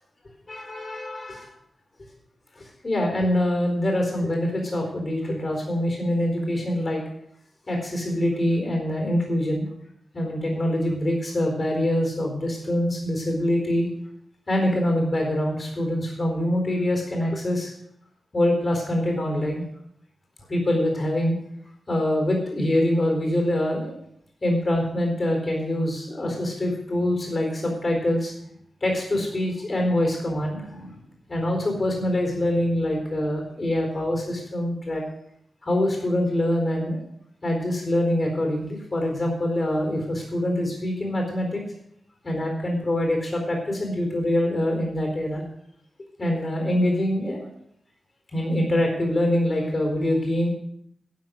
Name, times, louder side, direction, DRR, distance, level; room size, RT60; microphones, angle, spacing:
voice 1, 0.5-1.5 2.6-7.0 7.7-9.6 10.1-13.9 14.5-17.7 18.3-19.6 20.5-21.3 21.9-23.9 24.4-28.3 28.8-31.0 31.3-35.0 35.6-37.0 37.4-41.6 42.2-45.4 46.2-47.4 48.3-50.5, left 1 dB, 35° left, 2 dB, 4.2 m, -24 dB
12.5 x 7.6 x 6.3 m, 0.71 s
wide cardioid pair, 130°, 0 cm